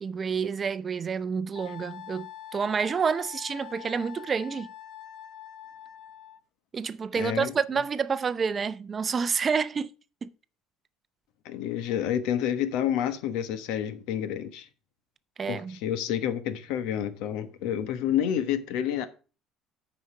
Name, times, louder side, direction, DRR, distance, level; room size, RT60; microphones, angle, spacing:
voice 1, 0.0-4.7 6.7-9.9 10.2-10.3 15.4-15.8, right 6 dB, 30° right, 0.5 m, -29 dB
Wind instrument woodwind instrument, 1.6-6.4, left 11 dB, 60° left, 0.8 m, -44 dB
voice 2, 7.2-7.5 11.4-14.7 15.5-19.1, left 10 dB, 80° left, 1.1 m, -29 dB
8.8 x 5.0 x 5.7 m
supercardioid pair, 105°, 0 cm